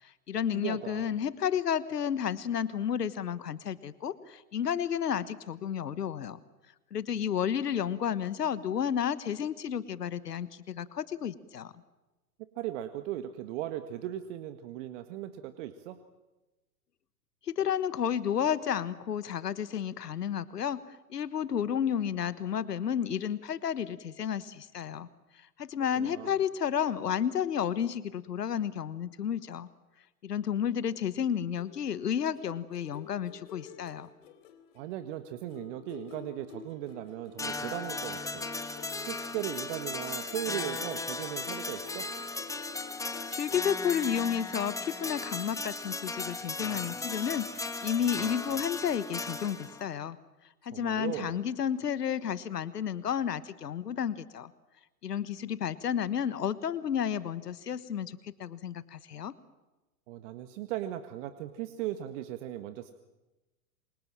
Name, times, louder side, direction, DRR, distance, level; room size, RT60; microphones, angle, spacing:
voice 1, 0.0-6.4 6.9-11.7 17.5-20.8 21.1-25.1 25.3-29.7 30.2-34.1 43.3-50.2 50.6-54.5 55.0-59.3, left 8 dB, 80° left, 17 dB, 1.3 m, -31 dB
voice 2, 0.5-1.1 12.6-16.0 26.0-26.3 34.8-38.4 39.1-42.1 50.7-51.4 60.1-62.9, right 12 dB, 50° right, 10 dB, 1.8 m, -38 dB
sound 1, 31.6-35.2 35.5-43.7, left 8 dB, 55° left, 3.9 m, -50 dB
sound 2, 37.4-49.9, left 3 dB, 5° left, 1.8 m, -36 dB
28.0 x 25.0 x 7.6 m, 1.1 s
hypercardioid pair, 115°, 47 cm